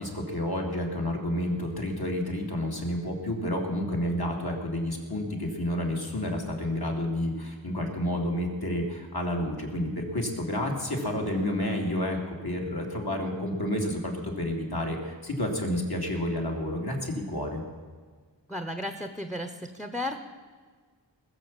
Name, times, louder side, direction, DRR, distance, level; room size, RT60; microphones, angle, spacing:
voice 1, 0.0-17.6, left 1 dB, 55° left, 0 dB, 2.6 m, -30 dB
voice 2, 18.5-20.2, left 1 dB, ahead, 7 dB, 0.9 m, -34 dB
20.0 x 7.3 x 7.3 m, 1.5 s
wide cardioid pair, 45°, 44 cm